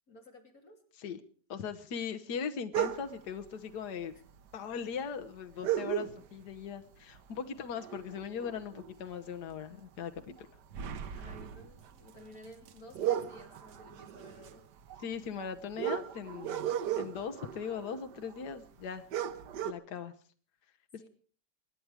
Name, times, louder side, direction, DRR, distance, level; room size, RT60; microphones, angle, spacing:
voice 1, 0.1-0.8 7.4-7.5 11.1-14.7 21.0-21.1, equal, 55° left, 2 dB, 3.4 m, -54 dB
voice 2, 1.5-4.1 4.5-10.3 15.0-16.6 17.0-19.0 19.6-20.1, left 6 dB, 75° left, 7 dB, 1.6 m, -39 dB
sound 1, 2.7-3.3 4.3-4.4 4.6-4.7 5.6-6.5 6.9-7.2 7.6-9.2 9.5-9.7 10.2-18.5 18.8-18.9 19.1-19.7, right 10 dB, 80° right, 1.5 m, -36 dB
26.0 x 10.5 x 4.8 m, 0.43 s
omnidirectional pair, 1.8 m